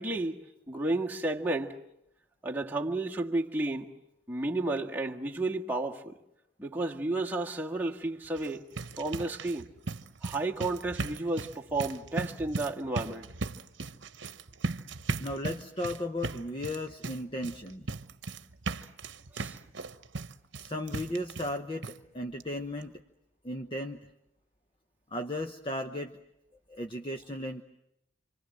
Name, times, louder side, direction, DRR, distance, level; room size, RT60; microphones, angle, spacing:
voice 1, 0.0-1.8 2.4-3.9 4.3-6.2 6.6-8.6 9.0-9.7 10.2-13.3 19.3-19.6, right 2 dB, 10° right, 1.8 m, -32 dB
sound 1, 8.2-21.6 21.8-22.0 22.4-22.5 22.8-22.9, right 3 dB, 65° right, 1.1 m, -38 dB
voice 2, 15.2-17.9 20.6-22.9 23.4-24.0 25.1-26.1 26.7-27.6, left 1 dB, 25° left, 1.1 m, -35 dB
28.5 x 25.5 x 7.7 m
head